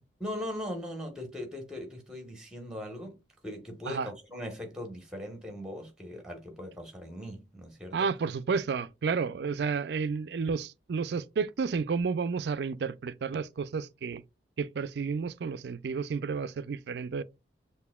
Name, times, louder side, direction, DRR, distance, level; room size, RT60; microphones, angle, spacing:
voice 1, 0.2-8.1, left 1 dB, 5° right, 1.1 m, -40 dB
voice 2, 7.9-14.2 14.6-17.2, right 5 dB, 65° right, 0.4 m, -31 dB
6.8 x 2.6 x 2.2 m
head